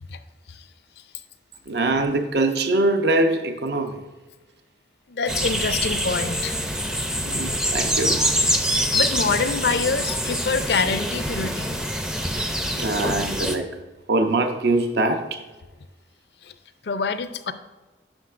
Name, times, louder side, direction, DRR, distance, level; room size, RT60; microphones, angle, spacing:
voice 1, 1.7-4.0 7.2-8.3 12.8-13.7 14.1-15.4, right 2 dB, 70° right, 6 dB, 0.7 m, -23 dB
voice 2, 5.1-6.6 8.7-11.8 16.4-16.5 16.8-17.5, left 4 dB, 70° left, 11 dB, 0.5 m, -26 dB
sound 1, 5.3-13.6, equal, 5° right, 0.4 m, -25 dB
9.9 x 6.3 x 2.5 m, 1.2 s
head